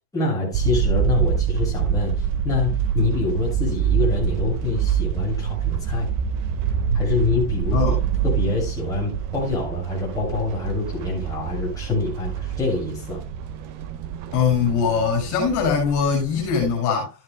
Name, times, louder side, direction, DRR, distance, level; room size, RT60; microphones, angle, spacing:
voice 1, 0.1-2.1 2.4-6.1 6.9-7.9 8.2-13.2, left 3 dB, 5° left, 7.0 m, -25 dB
sound 1, 0.5-16.7, right 8 dB, 40° right, 1.7 m, -26 dB
voice 2, 14.3-17.1, left 6 dB, 40° left, 7.2 m, -21 dB
14.5 x 10.5 x 2.3 m
supercardioid pair, 145°, 47 cm